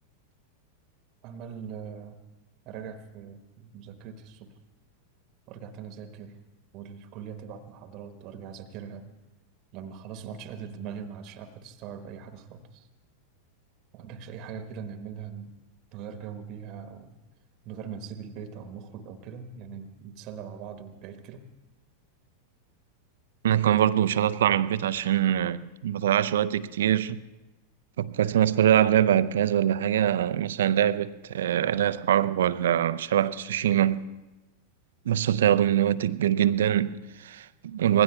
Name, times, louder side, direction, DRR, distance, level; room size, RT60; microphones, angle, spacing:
voice 1, 1.2-2.2 2.6-4.5 5.5-6.4 6.7-9.1 9.7-12.9 13.9-15.6 15.9-17.2 17.6-21.5, right 7 dB, 40° right, 1.1 m, -41 dB
voice 2, 23.4-27.2 28.0-34.1 35.1-38.0, right 10 dB, 60° right, 0.5 m, -23 dB
26.0 x 20.5 x 2.3 m
figure-of-eight pair, 90°, 0 cm